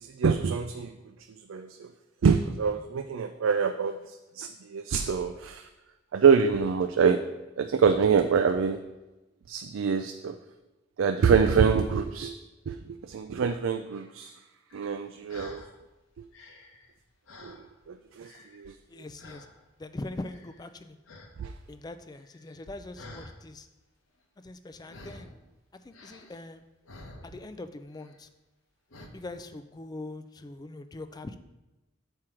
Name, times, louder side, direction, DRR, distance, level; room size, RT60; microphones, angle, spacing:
voice 1, 0.0-0.9 1.5-1.9 2.2-5.7 6.1-7.2 7.6-8.8 9.5-10.3 11.0-12.3 12.7-14.3 14.7-15.6 17.4-17.6 17.9-18.7 21.4-21.5, right 6 dB, 75° right, 7 dB, 0.4 m, -25 dB
sound 1, 14.7-15.7 16.2-18.0 18.2-18.8 19.2-19.6 20.1-20.7 21.0-21.4 21.6-23.4 24.9-25.4 25.9-27.6 27.9-28.3 28.9-29.1, left 2 dB, 80° left, 0.9 m, -49 dB
voice 2, 18.9-19.5 19.8-21.0 21.7-23.7 24.4-25.3 25.8-26.6 27.2-28.3 29.1-31.4, left 2 dB, 20° left, 10 dB, 0.3 m, -42 dB
7.3 x 4.5 x 4.9 m, 1.1 s
head